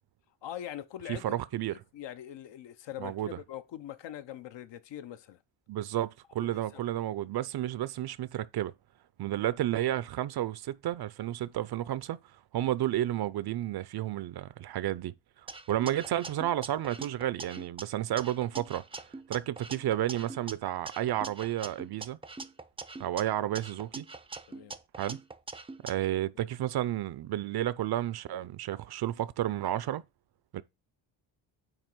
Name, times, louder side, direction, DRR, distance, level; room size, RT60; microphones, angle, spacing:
voice 1, 0.4-1.4 1.7-5.4 6.4-6.8 24.5-24.8 26.1-26.2, left 11 dB, 65° left, 0.9 m, -43 dB
voice 2, 1.1-1.7 3.0-3.4 5.7-8.7 9.2-12.2 12.5-15.1 15.7-18.8 19.3-22.2 23.0-24.1 25.0-25.2 25.8-30.0 30.5-30.6, right 13 dB, 55° right, 0.6 m, -31 dB
sound 1, 15.5-17.8 18.2-20.5 20.9-23.2 23.5-25.9, right 3 dB, 10° right, 0.5 m, -43 dB
9.0 x 3.0 x 6.0 m
cardioid pair, 105°, 46 cm